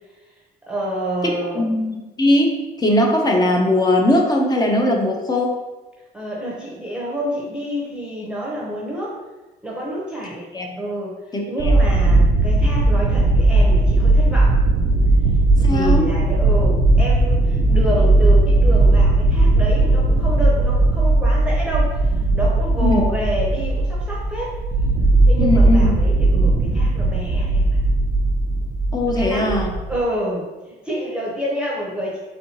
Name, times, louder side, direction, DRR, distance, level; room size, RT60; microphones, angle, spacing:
voice 1, 0.7-1.6 6.1-9.2 9.6-10.5 10.8-14.6 15.6-24.6 25.3-27.8 29.1-29.6 29.9-32.2, equal, 5° right, -5 dB, 0.8 m, -28 dB
voice 2, 1.2-5.6 10.5-10.7 11.3-11.4 15.6-16.1 22.8-23.0 25.4-25.9 28.9-29.7, left 1 dB, 25° left, 1 dB, 0.7 m, -19 dB
sound 1, 11.6-30.0, right 2 dB, 45° right, 0.5 m, -17 dB
4.2 x 3.7 x 2.9 m, 1.2 s
cardioid pair, 110°, 17 cm